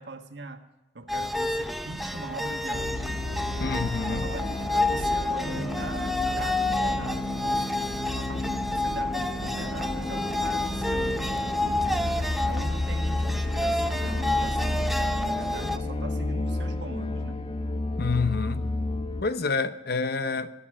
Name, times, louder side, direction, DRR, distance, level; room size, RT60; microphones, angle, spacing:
voice 1, 0.0-3.1 4.1-11.3 11.6-17.4, right 2 dB, 70° right, 1.4 m, -41 dB
sound 1, 1.1-15.8, left 2 dB, ahead, 0.6 m, -29 dB
sound 2, 2.7-19.2, left 2 dB, 30° left, 0.8 m, -31 dB
voice 2, 3.6-4.3 18.0-18.7 19.2-20.5, left 4 dB, 60° left, 0.8 m, -28 dB
14.0 x 8.4 x 8.8 m
head